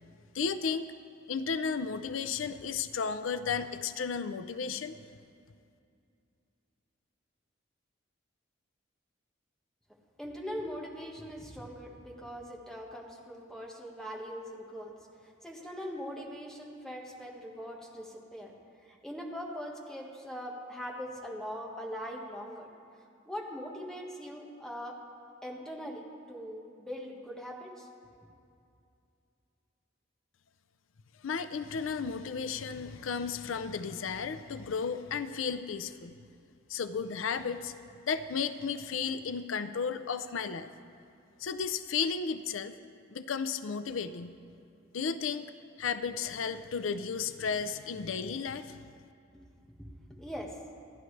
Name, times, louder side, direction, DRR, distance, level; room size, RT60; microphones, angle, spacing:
voice 1, 0.3-0.9 1.3-4.9 31.2-36.2 36.7-37.7 38.0-40.7 41.4-42.7 43.1-44.3 44.9-45.5 45.8-48.8, left 6 dB, 85° left, 11 dB, 0.5 m, -33 dB
voice 2, 10.2-15.0 15.2-18.5 18.8-22.7 23.2-25.0 25.4-27.9 49.8-50.8, equal, 5° left, -1 dB, 1.5 m, -41 dB
27.5 x 10.5 x 3.3 m, 2.5 s
head